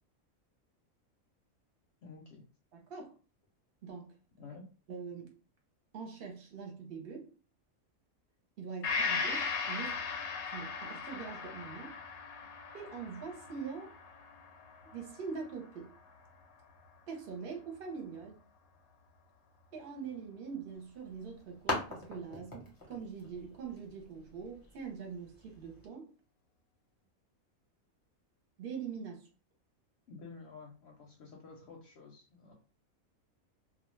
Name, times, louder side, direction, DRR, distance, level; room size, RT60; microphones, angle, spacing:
voice 1, 2.0-2.5 4.4-4.6 30.1-32.5, left 4 dB, 60° left, 0 dB, 0.7 m, -51 dB
voice 2, 2.7-3.1 3.8-4.1 4.9-5.3 5.9-7.3 8.6-10.0 10.5-11.9 12.7-13.9 14.9-15.9 17.1-18.4 19.7-26.1 28.6-29.3, right 5 dB, 50° right, 1 dB, 0.9 m, -43 dB
Gong, 8.8-16.5 16.9-17.0, left 5 dB, 85° left, 1.0 m, -38 dB
sound 1, 20.7-25.9, left 2 dB, 20° left, 0.6 m, -43 dB
2.3 x 2.2 x 3.1 m, 0.36 s
omnidirectional pair, 1.5 m